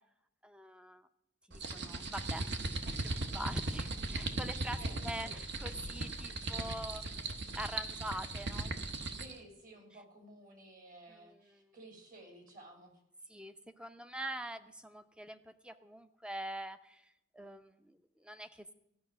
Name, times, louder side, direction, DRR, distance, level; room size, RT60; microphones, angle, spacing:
voice 1, 0.4-1.1 1.5-2.5 2.8-8.7 11.1-11.8 13.3-18.7, right 1 dB, 5° right, 10 dB, 0.7 m, -45 dB
sound 1, 1.5-9.4, right 2 dB, 65° right, 1.2 m, -38 dB
voice 2, 4.8-5.4 9.2-13.0, right 1 dB, 45° right, 3 dB, 3.0 m, -54 dB
14.5 x 5.9 x 9.1 m, 0.78 s
head